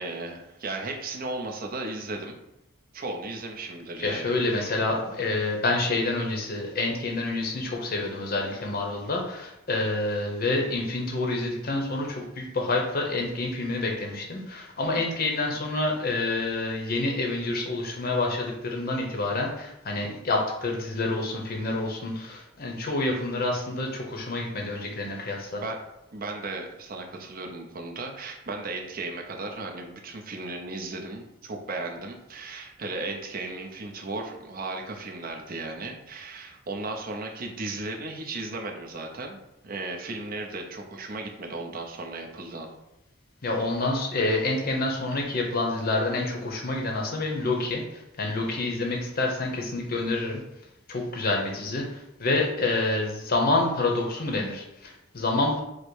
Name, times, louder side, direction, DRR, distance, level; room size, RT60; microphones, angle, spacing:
voice 1, 0.0-2.4 2.9-4.8 25.5-25.8 26.1-42.7 43.8-43.9, right 2 dB, 45° right, 2 dB, 0.6 m, -35 dB
voice 2, 4.0-25.6 43.4-50.4 50.9-51.9 52.2-55.6, left 2 dB, 50° left, 1 dB, 0.8 m, -28 dB
4.9 x 2.1 x 4.6 m, 0.88 s
head